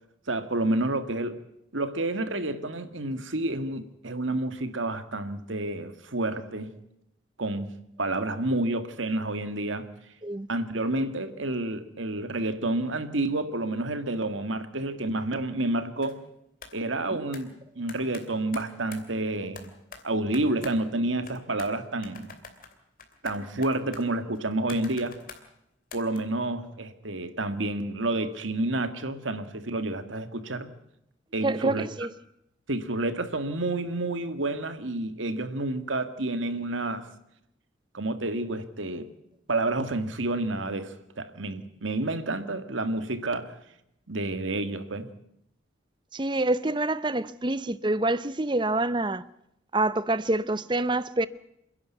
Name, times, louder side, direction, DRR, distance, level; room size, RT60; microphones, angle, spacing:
voice 1, 0.3-1.4 1.7-6.7 7.4-7.7 8.0-9.9 10.5-16.2 16.7-19.7 20.0-22.3 23.2-25.1 25.9-30.7 31.3-31.8 32.7-37.1 37.9-39.1 39.5-43.5 44.1-45.1, right 2 dB, 85° right, 1.9 m, -29 dB
sound 1, 16.0-16.2 16.6-16.8 17.3-17.5 17.9-19.1 19.6-21.0 21.2-21.8 22.0-25.5 25.9-26.2, left 5 dB, 45° left, 2.8 m, -46 dB
voice 2, 31.4-32.1 46.1-49.2 49.7-51.3, right 2 dB, 25° right, 0.7 m, -26 dB
28.0 x 11.0 x 9.2 m
head